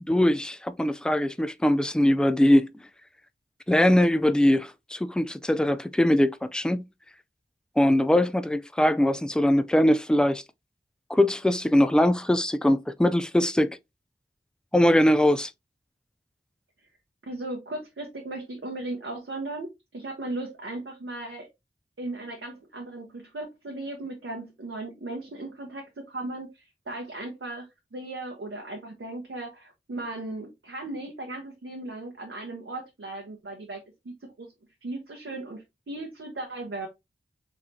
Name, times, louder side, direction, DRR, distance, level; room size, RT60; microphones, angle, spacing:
voice 1, 0.1-2.7 3.7-6.8 7.8-10.4 11.1-13.8 14.7-15.5, left 1 dB, 5° left, 0.4 m, -22 dB
voice 2, 17.2-21.5 22.0-34.5 34.8-36.9, right 2 dB, 85° right, 1.0 m, -37 dB
4.9 x 3.2 x 2.7 m
wide cardioid pair, 45°, 21 cm